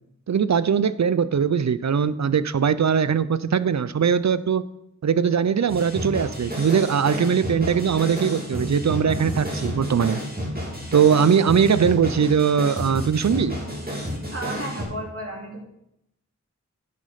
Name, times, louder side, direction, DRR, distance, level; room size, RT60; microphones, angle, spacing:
voice 1, 0.3-4.7 5.0-10.2 10.9-13.6, right 7 dB, 65° right, 15 dB, 0.5 m, -21 dB
sound 1, 5.7-14.8, equal, 30° right, 2.8 m, -31 dB
voice 2, 14.3-15.6, right 1 dB, 50° right, -1 dB, 2.6 m, -33 dB
9.4 x 5.1 x 5.5 m, 0.80 s
wide cardioid pair, 60°, 31 cm